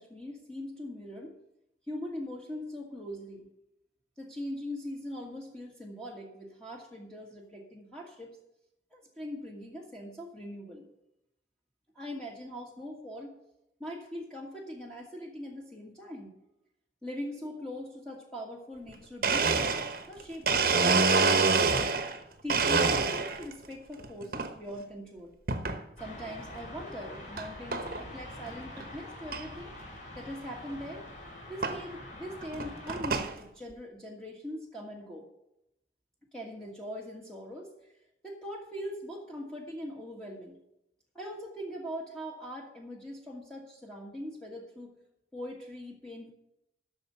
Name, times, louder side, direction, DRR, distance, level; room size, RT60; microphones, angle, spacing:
voice 1, 0.0-1.3 1.9-3.5 4.2-8.4 8.9-10.9 11.9-13.3 13.8-16.3 17.0-19.7 20.1-21.8 22.4-25.3 26.0-29.7 30.1-31.1 31.5-35.3 36.3-37.7 38.2-40.6 41.1-44.9 45.3-46.3, equal, 5° left, -2 dB, 1.5 m, -41 dB
Domestic sounds home sounds, 18.9-19.0 19.2-22.2 22.5-23.5 24.0-24.5 25.5-25.8 26.4-26.5 27.4-27.5 27.7-28.0 28.5-28.6 28.8-28.9 29.3-29.4 30.7-30.8 31.6-31.8 32.4-33.3, right 4 dB, 50° right, 1.0 m, -26 dB
sound 1, 26.0-33.0, left 1 dB, 45° left, 4.1 m, -45 dB
12.0 x 6.5 x 6.8 m, 0.83 s
head